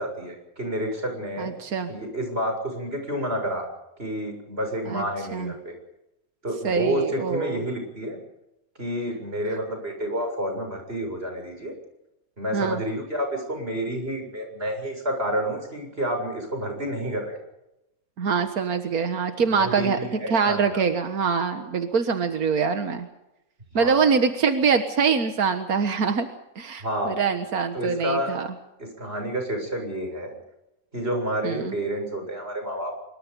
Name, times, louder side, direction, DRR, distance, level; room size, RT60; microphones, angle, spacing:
voice 1, 0.0-1.6 1.9-3.6 4.0-5.8 6.4-8.2 8.8-11.8 12.4-17.4 19.5-20.8 23.7-24.1 26.8-27.2 27.7-28.4 28.8-30.4 30.9-33.0, equal, 40° right, 4 dB, 7.2 m, -29 dB
voice 2, 1.4-1.9 4.9-5.1 5.3-5.5 6.6-7.6 12.5-12.8 18.2-20.0 20.3-23.1 23.8-26.3 26.6-28.5 31.4-31.7, right 5 dB, 90° right, 7 dB, 1.9 m, -24 dB
25.0 x 23.0 x 5.4 m, 0.89 s
omnidirectional pair, 1.5 m